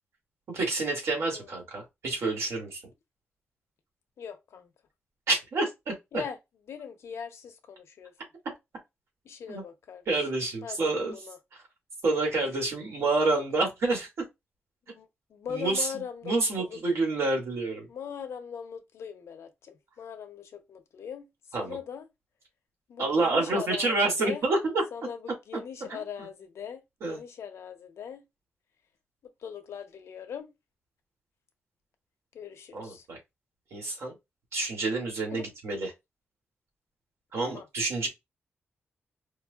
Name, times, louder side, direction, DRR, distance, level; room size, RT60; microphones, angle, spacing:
voice 1, 0.5-2.8 5.3-6.2 9.5-9.6 10.1-11.2 12.0-14.1 15.5-15.9 16.2-17.9 21.5-21.8 23.0-24.8 25.9-26.3 27.0-27.2 32.7-33.2 33.7-34.1 34.5-35.9 37.3-38.1, right 3 dB, 75° right, 1.9 m, -28 dB
voice 2, 1.2-1.5 4.2-4.7 6.1-6.4 6.7-8.1 9.2-10.3 10.6-11.4 14.9-16.8 17.9-21.3 21.6-22.1 22.9-24.4 24.9-28.2 29.4-30.5 32.3-33.1 35.3-35.5 37.4-37.7, left 7 dB, 90° left, 0.7 m, -40 dB
4.7 x 2.5 x 2.3 m
wide cardioid pair, 170°, 5 cm